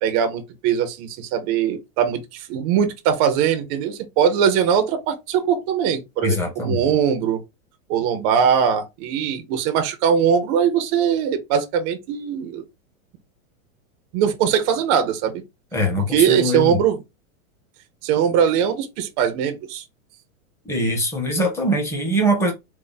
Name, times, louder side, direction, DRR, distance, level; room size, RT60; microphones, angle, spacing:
voice 1, 0.0-7.4 7.9-12.6 14.1-15.4 16.1-17.0 18.0-19.8, right 8 dB, 25° right, 0.4 m, -21 dB
voice 2, 6.2-6.8 15.7-16.8 20.6-22.5, equal, 5° left, 0.7 m, -22 dB
3.4 x 2.0 x 3.8 m
supercardioid pair, 155°, 42 cm